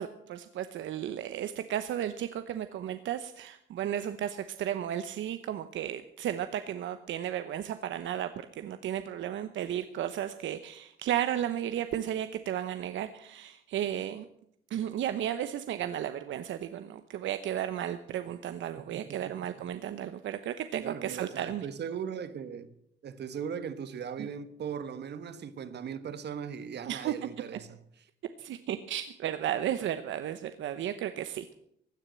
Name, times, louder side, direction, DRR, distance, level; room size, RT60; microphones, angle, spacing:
voice 1, 0.0-14.3 14.7-21.7 24.2-24.3 26.8-27.1 28.4-31.6, right 10 dB, 75° right, 0.9 m, -34 dB
voice 2, 18.9-19.3 20.8-22.7 23.0-27.8, right 7 dB, 60° right, 1.5 m, -39 dB
16.5 x 9.9 x 7.6 m
cardioid pair, 90°, 20 cm